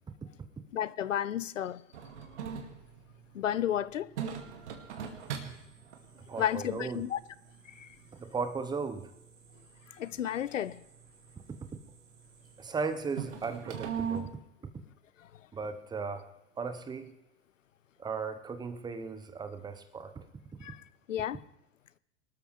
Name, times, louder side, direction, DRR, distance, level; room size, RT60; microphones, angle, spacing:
voice 1, 0.7-1.8 3.3-4.2 6.4-7.2 7.7-7.9 9.9-10.8 15.2-15.3 20.6-20.8 21.1-21.4, left 10 dB, 75° left, 0.6 m, -32 dB
sound 1, 1.9-14.2, right 7 dB, 60° right, 2.3 m, -43 dB
voice 2, 6.2-7.0 8.1-9.1 12.6-14.3 15.5-16.3 16.6-17.1 18.0-20.2, right 5 dB, 10° right, 1.0 m, -36 dB
23.5 x 12.5 x 3.3 m
figure-of-eight pair, 100°, 38 cm